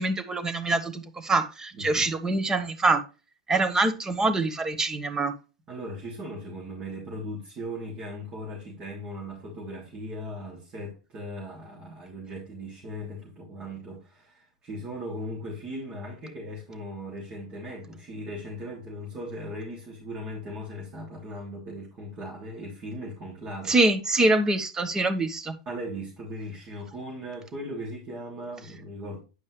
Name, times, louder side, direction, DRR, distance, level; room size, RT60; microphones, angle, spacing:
voice 1, 0.0-3.0 3.5-5.3 23.7-25.5, right 2 dB, 15° right, 1.1 m, -24 dB
voice 2, 1.7-2.1 5.7-23.7 25.6-29.2, equal, 35° right, 3.2 m, -38 dB
9.5 x 5.3 x 3.3 m
hypercardioid pair, 95°, 3 cm